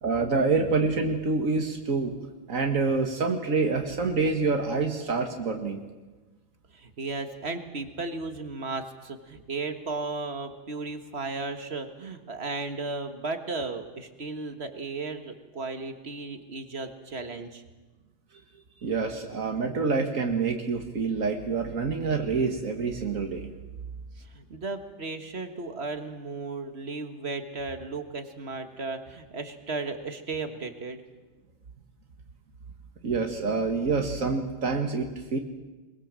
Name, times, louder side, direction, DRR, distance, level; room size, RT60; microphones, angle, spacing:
voice 1, 0.0-2.1 2.5-5.8 18.8-23.5 33.0-35.4, right 4 dB, 85° right, 3 dB, 2.1 m, -27 dB
voice 2, 6.7-17.6 24.2-31.0, right 3 dB, 50° right, 7 dB, 1.9 m, -35 dB
22.5 x 22.0 x 7.6 m, 1.2 s
omnidirectional pair, 1.3 m